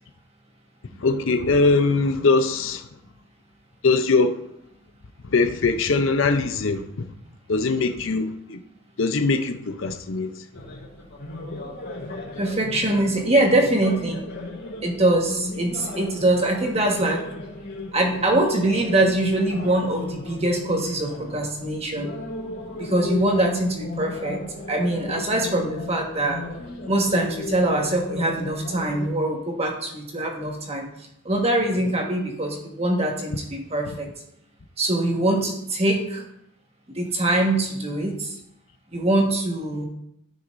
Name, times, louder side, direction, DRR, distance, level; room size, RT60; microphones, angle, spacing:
voice 1, 1.0-2.9 3.8-4.4 5.2-7.1 7.5-8.6 9.0-10.4, left 3 dB, 65° left, 0.6 m, -21 dB
sound 1, 10.5-29.1, left 2 dB, 85° left, 3.2 m, -35 dB
voice 2, 12.4-14.2 14.8-17.2 17.9-22.1 22.8-24.4 24.7-26.4 26.8-30.9 31.2-34.1 34.8-36.2 36.9-38.4 38.9-39.9, right 1 dB, 30° right, 1.5 m, -23 dB
13.0 x 6.2 x 2.6 m
head